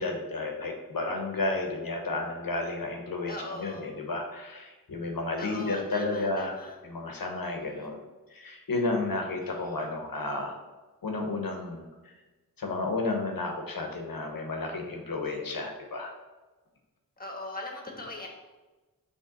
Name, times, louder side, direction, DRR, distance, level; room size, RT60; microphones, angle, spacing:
voice 1, 0.0-6.6 6.8-8.0 8.3-10.6 11.0-11.8 12.6-16.1, left 2 dB, 75° left, 2 dB, 1.1 m, -32 dB
voice 2, 3.3-3.8 5.4-6.8 7.4-7.9 9.4-9.9 17.2-18.3, left 2 dB, 25° left, 0 dB, 1.3 m, -41 dB
5.4 x 3.4 x 5.2 m, 1.2 s
wide cardioid pair, 85°, 35 cm